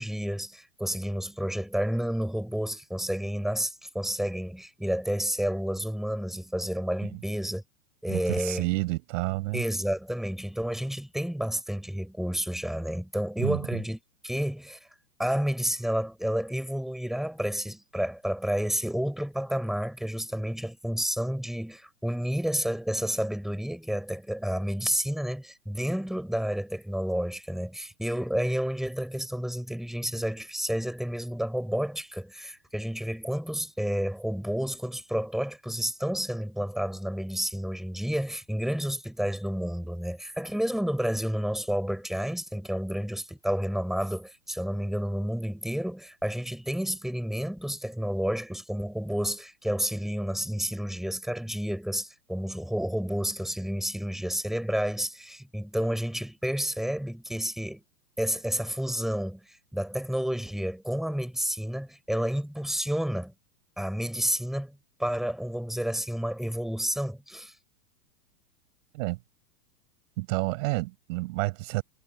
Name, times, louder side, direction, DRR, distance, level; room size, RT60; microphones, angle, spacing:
voice 1, 0.0-7.6 8.0-8.7 9.5-14.0 14.2-14.9 15.2-57.8 58.2-63.3 63.8-67.5, equal, ahead, 6.6 m, -30 dB
voice 2, 8.1-9.6 13.4-13.6 68.9-69.2 70.2-71.8, right 21 dB, 55° right, 6.3 m, -29 dB
hypercardioid pair, 120°, 47 cm